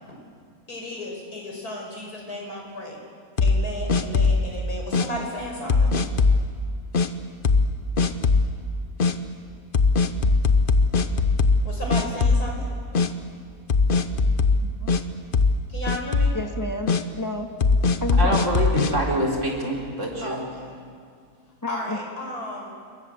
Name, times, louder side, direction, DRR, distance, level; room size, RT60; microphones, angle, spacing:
voice 1, 0.7-3.0 3.4-6.0 11.6-12.8 15.7-16.4 20.2-20.7 21.7-22.7, left 1 dB, 85° left, 0 dB, 5.9 m, -34 dB
sound 1, 3.4-4.5 4.9-5.1 5.7-6.4 6.9-7.1 7.4-7.7 8.0-8.5 9.0-9.1 9.7-11.7 11.9-12.6 12.9-13.1 13.7-15.0 15.3-15.6 15.9-16.4 16.9-17.0 17.6-18.9, left 4 dB, 40° left, 1.0 m, -20 dB
voice 2, 16.3-17.5 18.0-18.4 21.6-22.0, left 2 dB, 10° left, 4 dB, 1.8 m, -30 dB
voice 3, 18.2-20.4, right 1 dB, 50° right, -1 dB, 4.5 m, -26 dB
27.5 x 22.0 x 7.9 m, 2.2 s
omnidirectional pair, 1.6 m